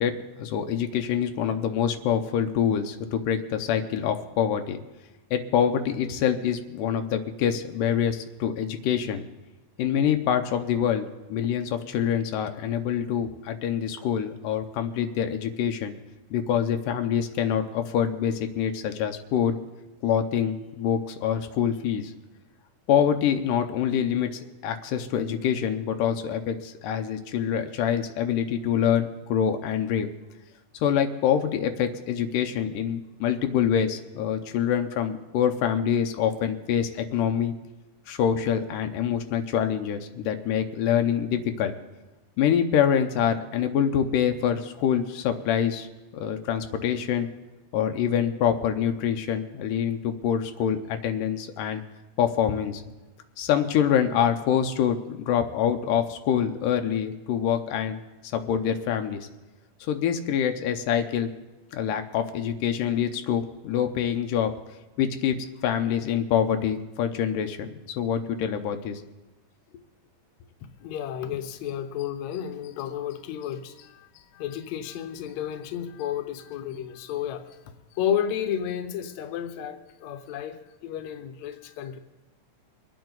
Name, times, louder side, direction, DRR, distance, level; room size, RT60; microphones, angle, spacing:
voice 1, 0.0-4.8 5.3-9.2 9.8-16.0 16.3-19.6 20.0-22.1 22.9-30.1 30.8-37.5 38.1-41.7 42.4-45.9 46.1-47.3 47.7-51.8 52.2-52.8 53.4-58.0 58.3-59.3 59.8-61.3 61.7-64.5 65.0-65.4 65.6-69.0, left 8 dB, 90° left, 6 dB, 2.5 m, -25 dB
voice 2, 70.8-82.0, left 9 dB, 70° left, 7 dB, 2.0 m, -32 dB
24.0 x 9.2 x 4.0 m, 1.1 s
omnidirectional pair, 3.7 m